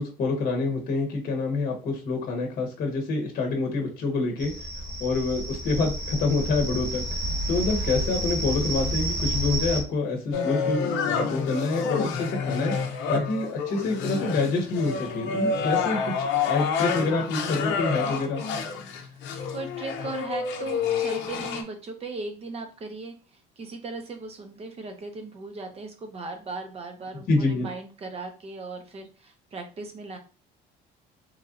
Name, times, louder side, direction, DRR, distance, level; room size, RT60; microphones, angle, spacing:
voice 1, 0.0-4.5 5.0-10.8 11.1-12.7 13.1-18.4 27.3-27.7, left 3 dB, 50° left, 1 dB, 0.8 m, -27 dB
sound 1, 4.4-9.8, right 1 dB, 80° right, 1.2 m, -30 dB
sound 2, 10.3-21.6, left 5 dB, 80° left, 0.6 m, -28 dB
voice 2, 18.9-30.2, right 3 dB, 30° right, 5 dB, 0.7 m, -38 dB
3.1 x 2.5 x 2.4 m, 0.35 s
cardioid pair, 125°, 19 cm